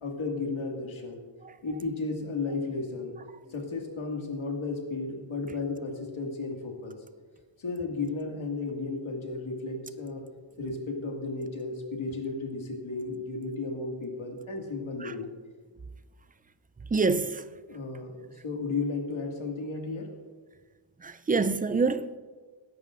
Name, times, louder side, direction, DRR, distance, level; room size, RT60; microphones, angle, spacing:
voice 1, 0.0-1.2 1.6-3.2 3.5-7.0 7.6-10.2 10.6-15.3 17.7-20.1, left 3 dB, 70° left, 2.1 m, -34 dB
voice 2, 16.9-17.4 21.0-22.2, right 4 dB, 20° right, 0.3 m, -26 dB
20.5 x 11.0 x 2.5 m
wide cardioid pair, 135°, 49 cm